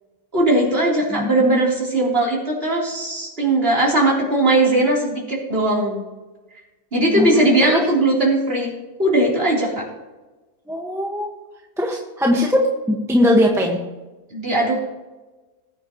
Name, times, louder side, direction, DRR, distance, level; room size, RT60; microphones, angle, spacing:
voice 1, 0.3-6.0 6.9-8.7 9.0-9.8 14.3-14.8, right 1 dB, 40° right, -4 dB, 4.2 m, -19 dB
voice 2, 1.1-1.6 7.1-7.8 10.7-11.3 11.8-13.8, left 1 dB, ahead, -1 dB, 1.5 m, -20 dB
20.0 x 9.4 x 3.2 m, 1.1 s
omnidirectional pair, 1.6 m